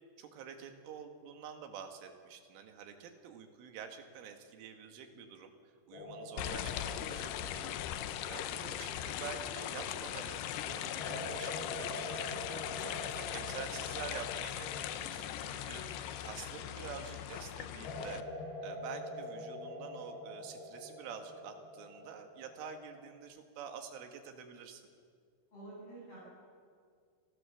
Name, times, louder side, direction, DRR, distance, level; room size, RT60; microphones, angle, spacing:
voice 1, 0.2-5.5 5.9-18.2 18.6-24.9, right 7 dB, 80° right, 5 dB, 4.3 m, -48 dB
sound 1, 5.9-10.1 11.0-17.0 17.8-23.2, left 1 dB, 55° left, 5.3 m, -46 dB
sound 2, 6.4-18.2, left 11 dB, 80° left, 2.5 m, -39 dB
voice 2, 8.5-8.8 25.5-26.2, right 2 dB, 30° left, -7 dB, 8.6 m, -50 dB
Gong, 15.0-19.6, right 2 dB, 45° right, 4.9 m, -61 dB
28.0 x 18.0 x 7.1 m, 2.1 s
omnidirectional pair, 5.6 m